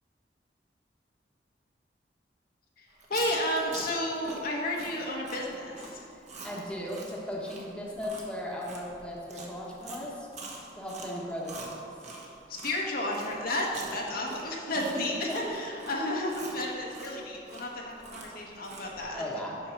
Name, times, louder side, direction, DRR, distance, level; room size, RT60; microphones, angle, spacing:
voice 1, 2.8-6.1 12.5-19.2, left 1 dB, 55° left, -1 dB, 1.2 m, -32 dB
Chewing mastication, 2.9-12.8 13.1-19.0, right 3 dB, 40° right, 1.2 m, -45 dB
voice 2, 6.4-10.3 10.7-11.7 14.7-14.8 19.1-19.5, left 1 dB, 5° left, -4 dB, 1.2 m, -37 dB
7.9 x 5.5 x 5.8 m, 2.8 s
head